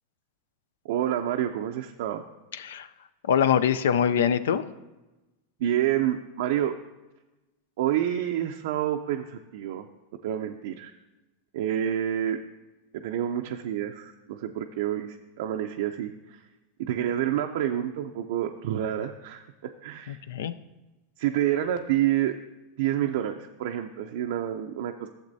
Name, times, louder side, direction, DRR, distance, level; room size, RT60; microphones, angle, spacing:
voice 1, 0.8-2.2 5.6-6.7 7.8-9.9 10.2-10.9 11.5-12.4 12.9-16.4 16.8-19.4 19.8-20.2 21.2-22.3 22.8-25.1, right 11 dB, 70° right, 3 dB, 0.4 m, -28 dB
voice 2, 2.5-2.9 3.2-4.6 20.1-20.5, left 8 dB, 80° left, 14 dB, 0.4 m, -24 dB
12.0 x 7.3 x 2.7 m, 1.1 s
hypercardioid pair, 115°, 0 cm